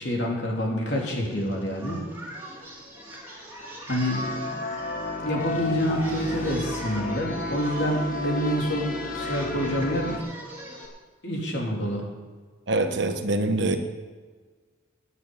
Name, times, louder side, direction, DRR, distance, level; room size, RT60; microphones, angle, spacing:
voice 1, 0.0-2.0 3.8-4.3 5.2-10.2 11.2-12.1, equal, 60° left, -1 dB, 3.4 m, -27 dB
Singing, 0.9-10.9, right 1 dB, 10° right, 2.8 m, -42 dB
sound 1, 4.1-10.2, left 2 dB, 45° left, 1.4 m, -33 dB
voice 2, 12.7-13.8, right 2 dB, 65° right, 7 dB, 1.2 m, -24 dB
9.8 x 9.4 x 9.6 m, 1.4 s
head